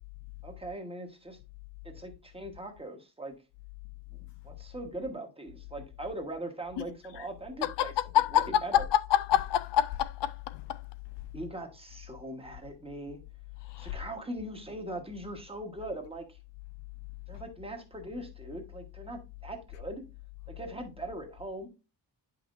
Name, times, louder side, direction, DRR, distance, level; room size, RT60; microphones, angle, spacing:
voice 1, 0.4-1.4 1.8-3.3 4.1-7.9 8.3-8.8 11.3-13.2 13.8-16.4 17.3-20.0 20.5-21.7, right 1 dB, 15° right, 1.2 m, -40 dB
voice 2, 6.8-7.3 7.6-10.8 13.7-14.0, left 12 dB, 80° left, 0.5 m, -28 dB
9.3 x 5.7 x 2.5 m
wide cardioid pair, 170°, 42 cm